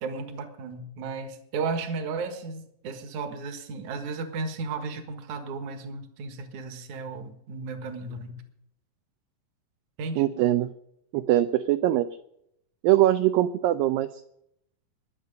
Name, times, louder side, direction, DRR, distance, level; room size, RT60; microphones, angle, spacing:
voice 1, 0.0-8.4 10.0-10.2, right 4 dB, 55° right, 6 dB, 2.6 m, -34 dB
voice 2, 10.2-10.7 11.1-12.1 12.8-14.1, right 14 dB, 80° right, 8 dB, 2.1 m, -22 dB
22.5 x 7.9 x 5.4 m, 0.75 s
omnidirectional pair, 4.6 m